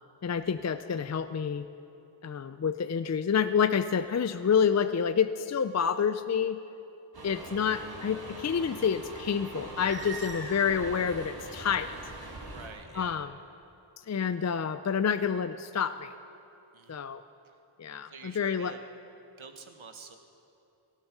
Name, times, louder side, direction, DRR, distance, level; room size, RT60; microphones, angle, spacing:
voice 1, 0.2-1.7 2.2-6.6 7.2-11.9 12.9-13.3 14.1-16.1 16.9-17.2 17.8-18.7, left 7 dB, 35° left, 11 dB, 0.4 m, -28 dB
sound 1, 7.1-12.7, right 2 dB, 50° right, 2.6 m, -42 dB
voice 2, 12.4-13.3 16.7-17.0 17.4-17.6 18.1-18.8 19.4-20.2, right 5 dB, 75° right, 6 dB, 1.4 m, -48 dB
18.0 x 13.0 x 6.0 m, 2.8 s
wide cardioid pair, 80°, 49 cm